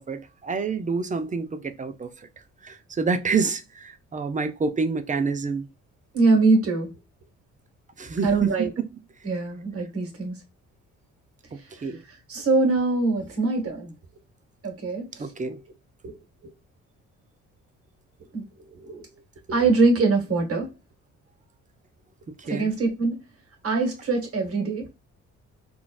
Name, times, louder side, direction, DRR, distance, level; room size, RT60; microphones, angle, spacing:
voice 1, 0.0-2.3 2.6-5.7 8.0-9.0 11.5-12.0 15.2-15.6 22.5-22.7, right 4 dB, 25° right, 0.5 m, -28 dB
voice 2, 6.1-6.9 8.2-8.7 9.2-10.3 11.8-11.9 12.3-13.9 14.6-15.2 16.0-16.1 18.3-18.4 18.8-19.1 19.5-20.7 22.4-23.2 23.6-24.9, right 3 dB, 50° right, 1.5 m, -23 dB
3.7 x 2.4 x 2.3 m
cardioid pair, 90°, 30 cm